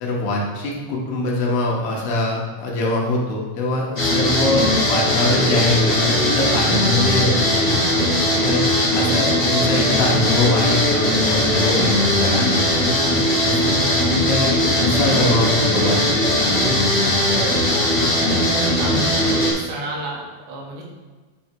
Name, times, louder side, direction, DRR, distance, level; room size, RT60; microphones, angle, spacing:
voice 1, 0.0-7.7 8.4-11.9 12.2-13.2 13.4-14.6 14.8-16.0 16.4-16.6, left 2 dB, 75° left, -2 dB, 3.1 m, -23 dB
sound 1, 4.0-19.5, left 1 dB, 25° left, 1.4 m, -19 dB
voice 2, 18.0-20.8, right 2 dB, 85° right, -2 dB, 3.6 m, -31 dB
9.3 x 3.5 x 4.5 m, 1.3 s
omnidirectional pair, 4.9 m